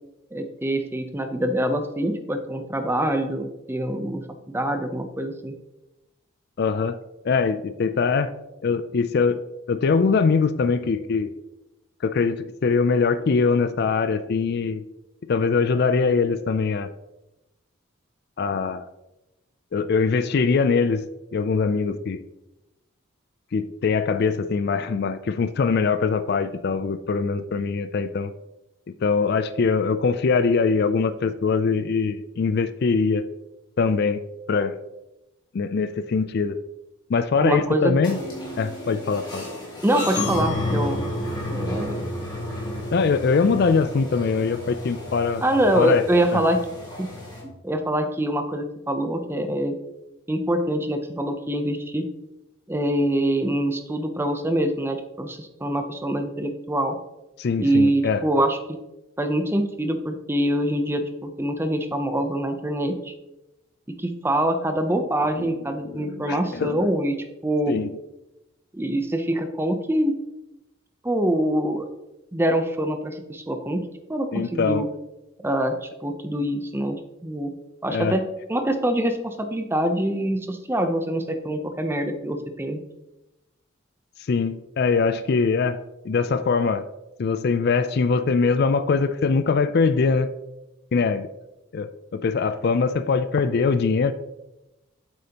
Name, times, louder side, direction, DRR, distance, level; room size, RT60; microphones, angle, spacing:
voice 1, 0.3-5.5 37.4-37.9 39.8-41.1 41.5-42.2 45.4-46.6 47.0-47.1 47.4-49.7 50.3-52.1 52.7-56.9 57.6-58.8 59.2-63.1 64.0-67.2 67.4-67.7 68.7-70.1 71.0-71.9 72.3-74.9 75.4-77.5 77.8-82.8, right 1 dB, 10° right, 6 dB, 0.6 m, -25 dB
voice 2, 6.6-7.0 7.2-8.3 8.6-9.4 9.7-11.3 12.0-14.8 15.3-16.9 18.4-18.9 19.7-21.0 21.3-22.2 23.5-28.3 29.0-33.2 33.8-34.2 34.5-34.8 35.5-36.6 37.1-38.2 38.6-39.5 42.9-45.4 45.8-46.0 46.3-46.4 57.4-58.2 65.4-65.6 65.8-66.8 67.7-67.9 74.3-74.9 77.9-78.2 84.3-85.8 86.0-86.8 87.2-90.3 90.9-91.3 91.7-94.1, left 5 dB, 50° left, 12 dB, 0.4 m, -22 dB
sound 1, 38.0-47.4, left 1 dB, 20° left, 2.7 m, -31 dB
8.5 x 7.7 x 2.9 m, 0.96 s
head